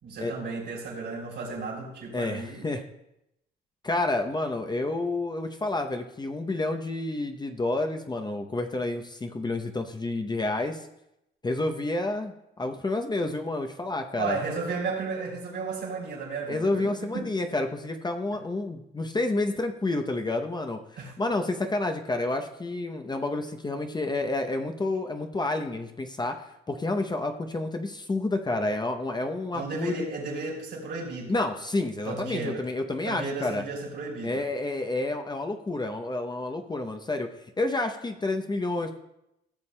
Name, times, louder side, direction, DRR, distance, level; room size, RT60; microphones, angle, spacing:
voice 1, 0.0-2.7 14.2-17.3 21.0-21.1 29.5-31.4 32.1-32.7 33.1-34.4, right 4 dB, 65° right, -2 dB, 3.5 m, -34 dB
voice 2, 2.1-2.8 3.8-10.9 11.4-14.4 16.5-30.1 31.3-33.6 34.2-37.3 37.6-39.0, left 2 dB, 20° left, 5 dB, 0.7 m, -29 dB
15.0 x 7.0 x 2.2 m, 0.83 s
cardioid pair, 90°, 20 cm